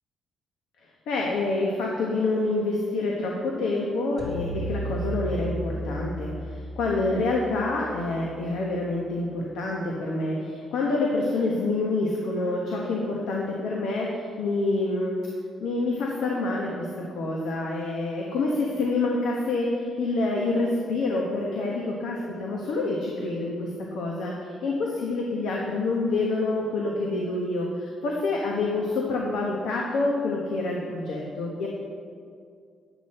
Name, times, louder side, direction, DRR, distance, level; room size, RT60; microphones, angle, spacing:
voice 1, 1.1-15.2 15.6-31.7, left 2 dB, 85° left, -1 dB, 1.2 m, -27 dB
sound 1, 4.2-8.5, right 1 dB, 45° left, 2.5 m, -34 dB
10.0 x 8.3 x 4.3 m, 2.2 s
cardioid pair, 90°, 0 cm